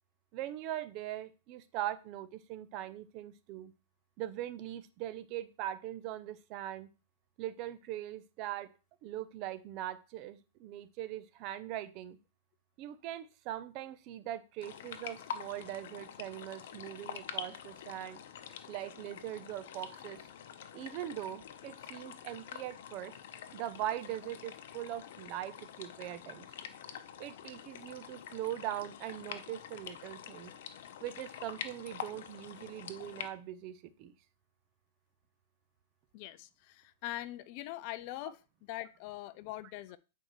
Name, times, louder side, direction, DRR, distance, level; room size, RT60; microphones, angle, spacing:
voice 1, 0.3-3.7 4.2-6.9 7.4-8.7 9.0-12.2 12.8-18.2 18.7-20.2 20.7-23.2 23.5-26.5 27.2-30.5 31.0-34.1, right 13 dB, 40° right, 0.6 m, -41 dB
sound 1, 14.6-33.3, left 9 dB, 65° left, 0.8 m, -46 dB
voice 2, 36.1-40.0, left 15 dB, 45° left, 0.4 m, -43 dB
8.8 x 4.6 x 3.2 m
hypercardioid pair, 150°, 0 cm